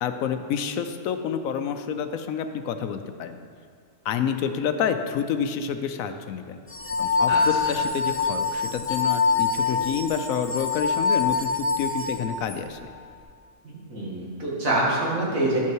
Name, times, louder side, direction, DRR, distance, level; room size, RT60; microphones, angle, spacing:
voice 1, 0.0-3.4 4.0-6.6 7.0-11.5 11.8-12.8, left 7 dB, 75° left, 8 dB, 1.0 m, -28 dB
sound 1, 6.7-12.6, left 4 dB, 10° left, 0.6 m, -25 dB
voice 2, 7.3-7.8 13.6-15.6, right 2 dB, 65° right, -5 dB, 2.3 m, -26 dB
11.0 x 5.8 x 4.6 m, 2.1 s
omnidirectional pair, 1.5 m